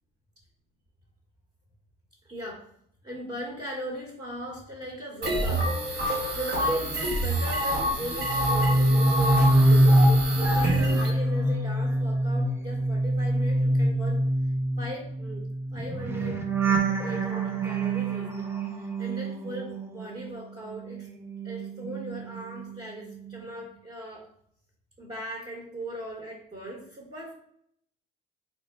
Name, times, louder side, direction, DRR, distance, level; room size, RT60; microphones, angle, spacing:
voice 1, 2.2-2.7 3.0-5.7 6.3-9.9 10.2-14.2 14.8-15.5 15.7-18.5 18.8-21.1 21.4-24.3 25.0-27.3, right 1 dB, 30° right, -1 dB, 1.0 m, -39 dB
sound 1, 5.2-11.1, equal, 60° right, 0.9 m, -27 dB
sound 2, 8.1-20.4 20.7-22.8 23.1-23.4, right 1 dB, 10° right, 0.6 m, -25 dB
4.0 x 2.1 x 3.4 m, 0.68 s
cardioid pair, 90°, 20 cm